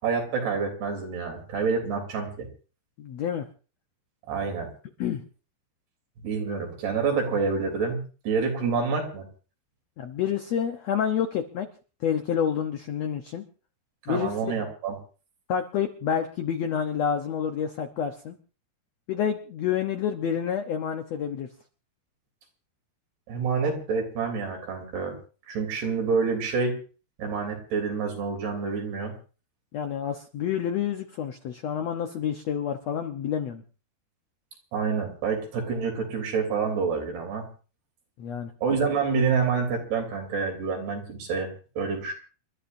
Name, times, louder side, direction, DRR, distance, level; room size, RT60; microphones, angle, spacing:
voice 1, 0.0-2.5 4.3-4.7 6.2-9.3 14.1-15.0 23.3-25.2 25.5-26.8 27.2-29.1 34.7-37.5 38.6-41.5 41.8-42.1, right 5 dB, 85° right, 2 dB, 5.5 m, -27 dB
voice 2, 3.0-3.5 5.0-5.2 10.0-11.7 12.0-13.4 14.1-14.4 15.5-18.4 19.1-21.5 29.7-33.6 38.2-38.5, left 8 dB, 85° left, 6 dB, 1.5 m, -28 dB
28.5 x 13.0 x 2.6 m, 0.37 s
omnidirectional pair, 4.5 m